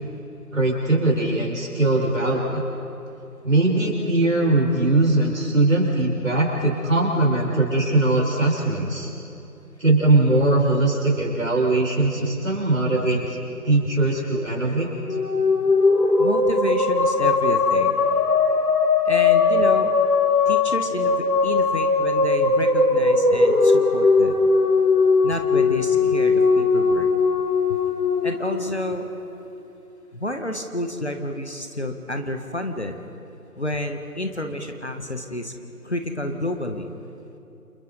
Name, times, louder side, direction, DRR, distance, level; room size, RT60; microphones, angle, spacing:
voice 1, 0.5-2.6 3.4-9.1 9.8-13.4 13.6-14.9, right 2 dB, 55° right, -2 dB, 6.4 m, -20 dB
sound 1, 15.0-29.4, left 4 dB, 75° left, 2.2 m, -19 dB
voice 2, 16.2-18.0 19.0-19.9 20.5-24.3 25.2-27.1 27.7-27.8 28.2-29.1 30.1-33.0 33.6-35.5 35.8-37.0, left 1 dB, 45° left, 5 dB, 1.5 m, -30 dB
29.0 x 29.0 x 4.2 m, 2.8 s
figure-of-eight pair, 175°, 47 cm